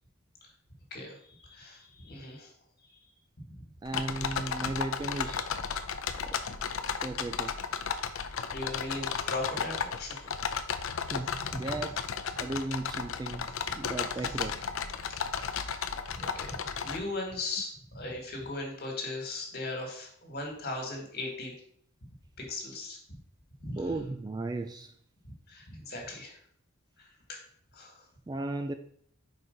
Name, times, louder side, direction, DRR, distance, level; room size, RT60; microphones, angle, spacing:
voice 1, 0.9-2.5 2.9-3.0 3.4-3.6 8.5-10.3 11.4-11.8 13.5-13.7 14.2-14.4 15.4-21.5 22.4-23.0 23.6-23.8 25.5-26.4 27.0-27.4 27.7-28.0, left 2 dB, 45° left, 1 dB, 1.8 m, -39 dB
sound 1, 3.8-17.0, left 6 dB, 65° left, 0.5 m, -34 dB
voice 2, 3.8-5.5 6.2-6.3 7.0-7.5 11.1-12.0 12.4-13.4 13.7-14.6 23.8-24.9 28.3-28.7, right 2 dB, 20° right, 7 dB, 0.3 m, -35 dB
4.9 x 4.4 x 5.1 m, 0.64 s
head